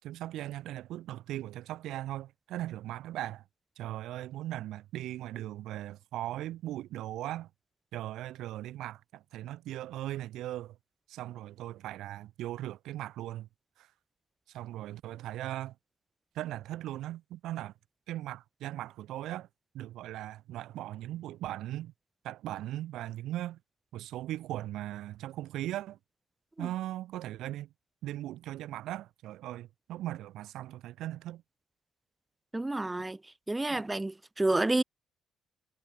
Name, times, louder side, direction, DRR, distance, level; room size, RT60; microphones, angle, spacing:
voice 1, 0.0-3.4 3.8-7.5 7.9-10.8 11.1-13.5 13.8-13.9 14.5-15.7 16.3-17.7 18.1-19.5 19.7-21.9 22.2-23.6 23.9-26.0 26.6-27.7 28.0-31.4 33.7-33.8, right 14 dB, 75° right, 6.0 m, -38 dB
voice 2, 32.5-33.2 33.5-34.8, right 2 dB, 10° right, 1.4 m, -29 dB
cardioid pair, 160°, 0 cm